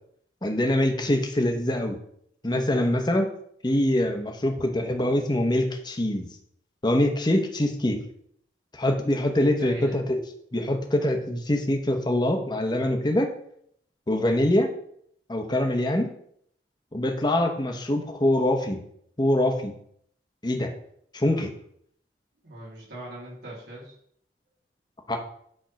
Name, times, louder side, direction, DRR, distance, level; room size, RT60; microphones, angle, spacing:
voice 1, 0.4-2.0 2.4-3.3 3.6-6.3 6.8-8.0 8.7-10.2 10.5-13.3 14.1-14.7 15.3-16.1 16.9-18.8 19.2-19.7 20.4-20.7 21.1-21.5 25.1-25.2, left 1 dB, 25° left, 4 dB, 1.0 m, -24 dB
voice 2, 9.6-10.0 22.4-23.9, right 1 dB, 70° right, -4 dB, 3.4 m, -41 dB
8.8 x 3.6 x 5.7 m, 0.67 s
head